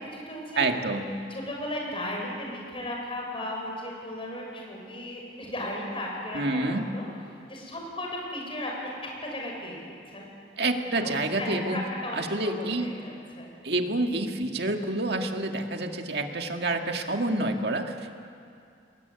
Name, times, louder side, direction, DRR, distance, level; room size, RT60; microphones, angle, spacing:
voice 1, 0.0-0.6 1.3-7.1 7.5-10.3 10.9-13.5, left 1 dB, 30° left, -1 dB, 6.7 m, -36 dB
voice 2, 0.6-1.2 6.3-6.9 10.6-11.8 12.1-12.9 13.6-18.2, right 2 dB, 65° right, 4 dB, 2.1 m, -28 dB
22.5 x 21.0 x 9.5 m, 2.4 s
head